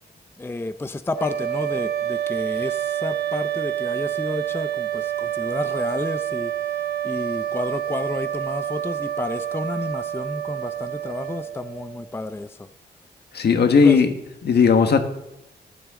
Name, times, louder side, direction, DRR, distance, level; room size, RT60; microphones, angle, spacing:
voice 1, 0.4-6.5 7.0-12.5 13.8-14.0, left 2 dB, 15° left, 0.5 m, -31 dB
sound 1, 1.1-12.1, right 11 dB, 70° right, 0.6 m, -28 dB
voice 2, 13.3-14.1 14.4-15.0, left 5 dB, 70° left, 1.5 m, -16 dB
15.0 x 12.0 x 3.7 m
wide cardioid pair, 115°, 18 cm